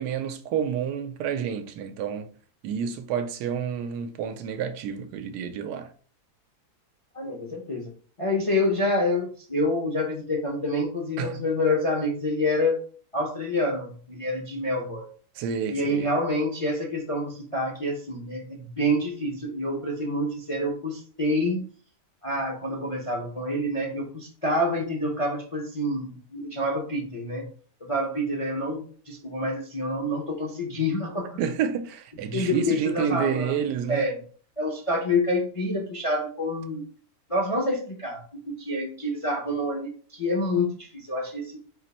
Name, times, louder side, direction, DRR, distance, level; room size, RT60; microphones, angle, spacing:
voice 1, 0.0-2.3 2.6-5.9 11.2-11.4 15.4-16.1 31.4-34.1, right 8 dB, 80° right, 1.1 m, -29 dB
voice 2, 7.1-7.9 8.2-12.8 13.1-15.1 15.7-21.7 22.2-27.5 27.8-31.4 32.3-34.2 34.6-36.8 37.3-38.2 38.5-41.6, left 1 dB, 35° left, 0.5 m, -27 dB
4.5 x 2.5 x 4.1 m
omnidirectional pair, 1.8 m